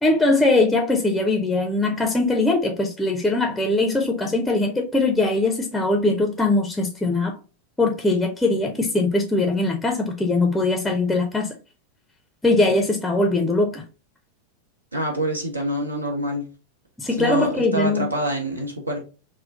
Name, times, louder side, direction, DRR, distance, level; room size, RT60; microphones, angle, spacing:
voice 1, 0.0-7.4 7.8-11.5 12.4-13.8 17.0-18.1, left 2 dB, 5° left, 0.6 m, -21 dB
voice 2, 14.9-16.5 17.2-19.0, right 1 dB, 80° right, 1.1 m, -26 dB
3.6 x 2.2 x 3.6 m
figure-of-eight pair, 90°, 0 cm